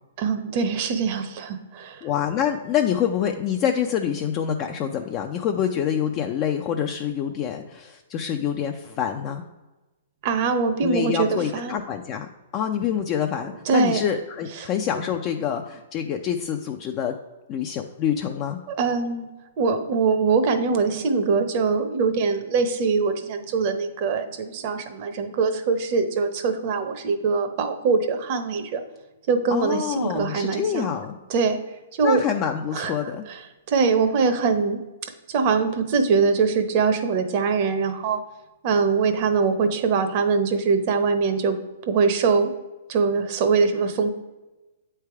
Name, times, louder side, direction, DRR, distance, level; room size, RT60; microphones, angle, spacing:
voice 1, 0.2-2.0 10.2-11.8 13.7-14.0 14.6-14.7 18.7-19.3 19.6-28.8 29.3-30.9 31.3-31.6 32.0-32.2 32.7-33.4 33.7-34.8 35.3-38.2 38.6-41.6 41.9-42.5 42.9-44.1, right 5 dB, 45° right, 8 dB, 0.8 m, -23 dB
voice 2, 2.0-9.4 10.8-17.2 17.5-18.6 29.5-31.1 32.0-33.2, left 9 dB, 30° left, 3 dB, 0.4 m, -26 dB
8.2 x 3.4 x 4.7 m, 1.1 s
hypercardioid pair, 140°, 0 cm